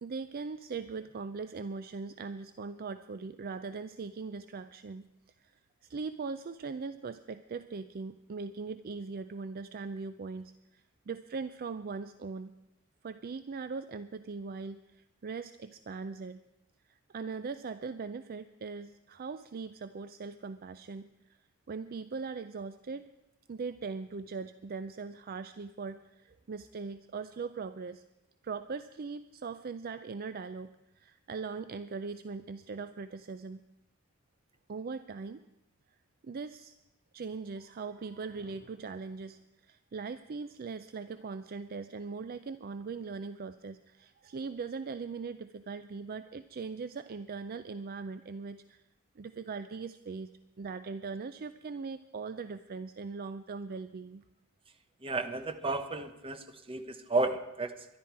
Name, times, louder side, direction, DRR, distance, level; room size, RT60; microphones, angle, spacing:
voice 1, 0.0-5.1 5.4-5.5 5.8-12.5 13.0-16.4 16.9-21.1 21.7-23.1 23.5-28.0 28.4-33.6 34.7-35.4 36.2-36.8 37.1-48.8 49.2-50.3 50.6-54.2, right 4 dB, 45° right, 12 dB, 0.4 m, -40 dB
voice 2, 55.0-57.9, right 2 dB, 25° right, 10 dB, 0.9 m, -33 dB
23.0 x 11.0 x 4.7 m, 0.92 s
head